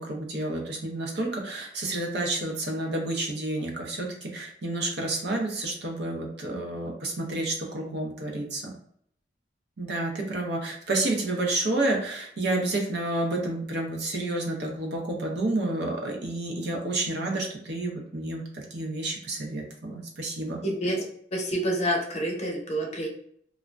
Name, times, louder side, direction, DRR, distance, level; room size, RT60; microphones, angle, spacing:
voice 1, 0.0-8.7 9.8-20.6, right 2 dB, 65° right, 1 dB, 0.7 m, -30 dB
voice 2, 20.6-21.1 21.3-23.1, right 1 dB, 40° left, 0 dB, 0.7 m, -28 dB
2.5 x 2.1 x 3.2 m, 0.65 s
head